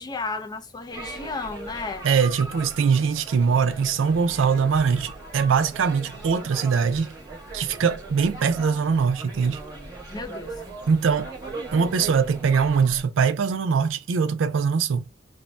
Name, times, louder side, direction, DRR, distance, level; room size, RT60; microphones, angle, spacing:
voice 1, 0.0-2.1 10.1-10.6, left 3 dB, 20° left, 0.4 m, -33 dB
sound 1, 0.9-13.0, right 3 dB, 20° right, 1.0 m, -39 dB
voice 2, 2.0-7.1 7.5-9.6 10.9-11.3 11.7-15.0, right 6 dB, 80° right, 0.4 m, -22 dB
2.5 x 2.0 x 3.1 m
head